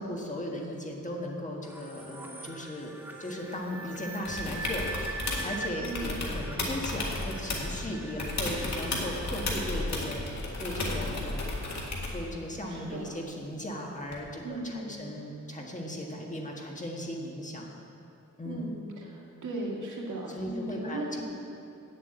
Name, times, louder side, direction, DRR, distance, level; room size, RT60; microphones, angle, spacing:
voice 1, 0.0-2.9 3.2-4.9 5.4-11.6 12.1-17.7 18.4-18.6 20.3-21.2, left 1 dB, 25° left, -1 dB, 1.5 m, -37 dB
sound 1, 1.6-10.2, right 2 dB, 5° right, 1.2 m, -43 dB
sound 2, 4.2-5.5 5.8-7.8 8.2-12.2 14.1-14.2, left 2 dB, 65° left, 2.0 m, -33 dB
voice 2, 12.7-13.2 14.4-15.0 18.4-21.2, right 2 dB, 75° right, -2 dB, 2.0 m, -37 dB
9.3 x 7.7 x 7.9 m, 2.7 s
wide cardioid pair, 125°, 30 cm